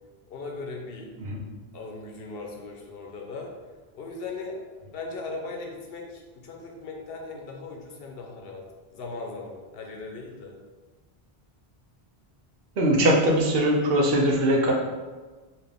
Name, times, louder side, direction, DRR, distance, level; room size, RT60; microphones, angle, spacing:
voice 1, 0.3-1.1 1.7-3.5 3.9-4.6 4.9-8.6 8.9-10.5, left 3 dB, 70° left, 1 dB, 0.9 m, -38 dB
voice 2, 12.8-14.7, equal, 70° right, 0 dB, 0.9 m, -21 dB
4.0 x 2.4 x 3.4 m, 1.3 s
omnidirectional pair, 1.0 m